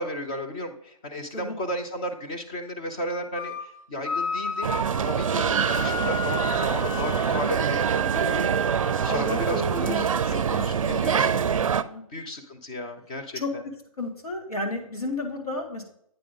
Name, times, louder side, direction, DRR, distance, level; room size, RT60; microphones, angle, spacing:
voice 1, 0.0-4.7 5.0-11.4 12.1-13.6, left 1 dB, 10° left, 4 dB, 0.4 m, -34 dB
sound 1, 3.3-3.7 4.0-10.1, left 1 dB, 60° left, 1.0 m, -33 dB
sound 2, 4.6-11.8, right 7 dB, 60° right, 0.4 m, -25 dB
voice 2, 5.5-6.1 9.0-11.3 11.9-12.0 13.3-13.5 14.0-15.8, left 1 dB, 80° left, 3 dB, 2.0 m, -33 dB
8.5 x 4.9 x 3.6 m, 0.69 s
hypercardioid pair, 155°, 19 cm